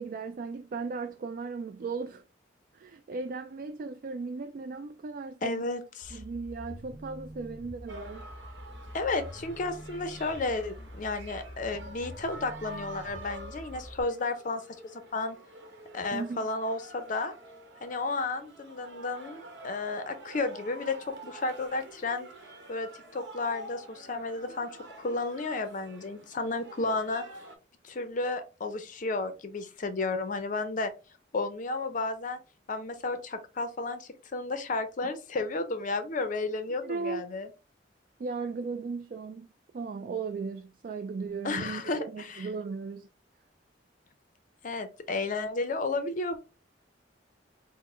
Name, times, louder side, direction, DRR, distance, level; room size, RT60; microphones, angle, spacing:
voice 1, 0.0-2.2 2.7-5.6 6.1-8.3 16.1-16.5 36.8-37.3 38.2-39.5 39.7-43.1, right 4 dB, 50° right, 0.3 m, -36 dB
voice 2, 5.4-6.2 8.9-14.6 14.9-15.4 15.9-17.3 17.8-22.3 22.7-24.7 25.0-27.2 27.8-30.9 31.3-32.4 32.7-37.5 41.4-42.5 44.6-46.4, left 3 dB, 45° left, 0.5 m, -32 dB
sound 1, 6.0-14.0, left 1 dB, 20° left, 0.9 m, -46 dB
sound 2, 7.9-27.6, right 1 dB, 70° right, 0.9 m, -48 dB
4.3 x 2.0 x 4.2 m
head